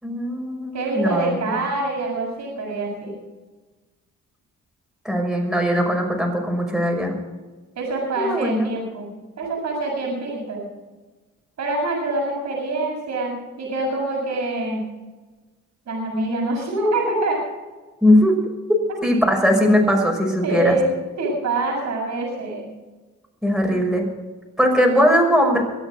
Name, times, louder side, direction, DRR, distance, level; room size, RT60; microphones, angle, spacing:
voice 1, 0.0-1.3 5.0-7.1 8.2-8.7 18.0-18.3 19.0-20.8 23.4-24.0 24.6-25.6, equal, ahead, 0 dB, 6.0 m, -19 dB
voice 2, 0.7-3.2 7.8-10.7 11.6-14.8 15.9-17.4 18.9-19.0 20.4-22.7, right 2 dB, 65° right, -1 dB, 7.1 m, -25 dB
24.0 x 8.1 x 6.4 m, 1.2 s
cardioid pair, 90°, 30 cm